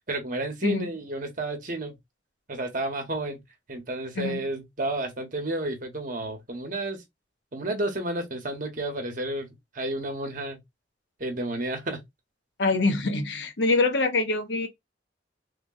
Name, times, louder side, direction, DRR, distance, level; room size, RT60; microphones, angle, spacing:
voice 1, 0.1-1.9 2.5-3.4 3.7-7.0 7.5-9.5 9.7-10.6 11.2-12.0, right 1 dB, 45° right, 1.2 m, -31 dB
voice 2, 12.6-14.7, left 3 dB, 75° left, 0.9 m, -24 dB
3.4 x 2.3 x 3.8 m
head